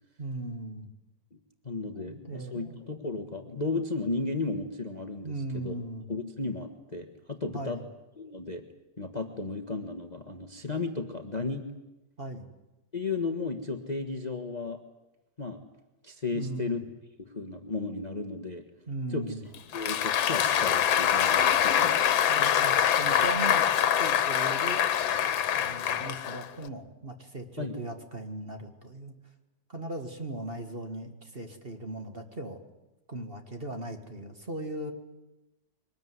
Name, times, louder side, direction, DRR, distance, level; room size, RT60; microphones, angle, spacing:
voice 1, 0.2-0.9 1.9-2.8 5.2-6.1 7.5-7.9 12.2-12.5 16.3-16.8 18.9-19.4 21.8-22.0 22.3-23.7 24.0-24.8 25.6-29.1 29.7-32.6 33.1-34.9, right 2 dB, 30° right, 5 dB, 2.0 m, -38 dB
voice 2, 1.6-5.7 6.1-7.8 8.2-8.6 9.0-11.6 12.9-14.8 15.4-15.6 16.0-16.8 17.2-18.6 19.1-19.2 19.7-22.0 27.6-27.8, left 3 dB, 25° left, 6 dB, 1.4 m, -34 dB
Applause, 19.5-26.7, left 9 dB, 90° left, 1.8 m, -25 dB
23.5 x 20.0 x 9.7 m, 0.98 s
omnidirectional pair, 2.1 m